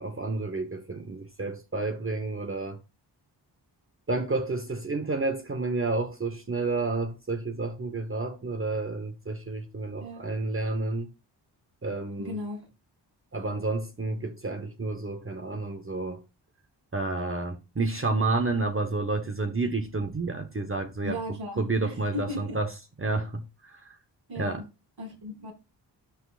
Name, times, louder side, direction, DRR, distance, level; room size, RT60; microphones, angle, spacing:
voice 1, 0.0-2.8 4.1-11.1 11.8-12.4 13.3-16.2 16.9-22.7 23.0-24.0 24.3-24.6, right 3 dB, 30° right, 1.2 m, -30 dB
voice 2, 12.2-12.7 21.0-22.6 24.3-24.7 25.0-25.5, left 1 dB, 60° right, 5.9 m, -36 dB
12.0 x 6.1 x 2.5 m
cardioid pair, 55°, 42 cm